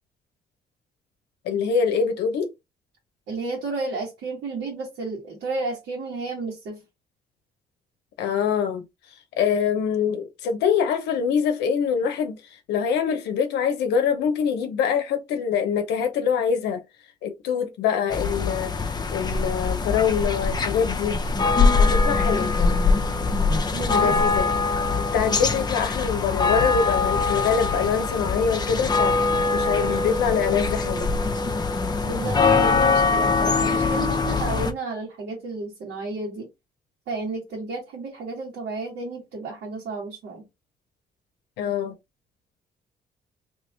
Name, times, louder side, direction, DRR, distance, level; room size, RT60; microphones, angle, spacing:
voice 1, 1.4-2.5 8.2-8.8 9.4-12.4 12.7-16.8 17.2-21.2 21.8-22.6 23.9-24.5 25.0-29.2 29.5-31.1 41.6-42.0, left 7 dB, 90° left, 0.6 m, -24 dB
voice 2, 3.3-6.8 23.7-24.1 32.0-36.5 37.1-40.4, right 3 dB, 85° right, 1.5 m, -32 dB
sound 1, 18.1-34.7, left 4 dB, 25° left, 0.6 m, -22 dB
2.9 x 2.9 x 3.3 m
cardioid pair, 85°, 17 cm